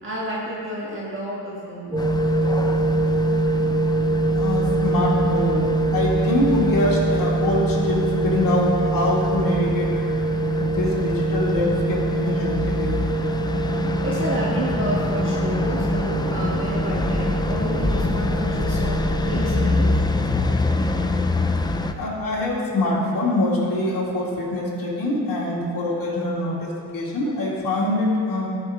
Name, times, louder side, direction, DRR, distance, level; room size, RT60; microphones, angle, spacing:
voice 1, 0.0-2.0 14.0-20.0, equal, 30° right, -7 dB, 1.6 m, -30 dB
sound 1, 1.9-20.0, right 2 dB, 10° right, 0.9 m, -24 dB
sound 2, 2.0-21.9, left 2 dB, 10° left, 0.3 m, -26 dB
voice 2, 4.3-9.9 10.7-13.2 18.2-18.4 21.9-28.5, left 1 dB, 55° left, -5 dB, 2.5 m, -24 dB
14.5 x 5.7 x 3.9 m, 2.4 s
cardioid pair, 115°, 41 cm